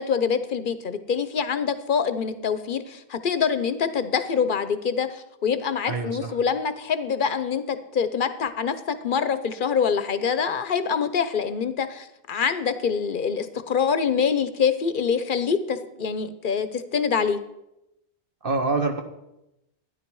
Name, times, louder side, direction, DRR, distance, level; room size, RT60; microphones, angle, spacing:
voice 1, 0.0-17.4, left 6 dB, 50° left, 12 dB, 0.8 m, -25 dB
voice 2, 5.9-6.3 18.4-19.0, right 3 dB, 55° right, 5 dB, 1.2 m, -25 dB
13.0 x 10.0 x 4.7 m, 0.87 s
omnidirectional pair, 1.2 m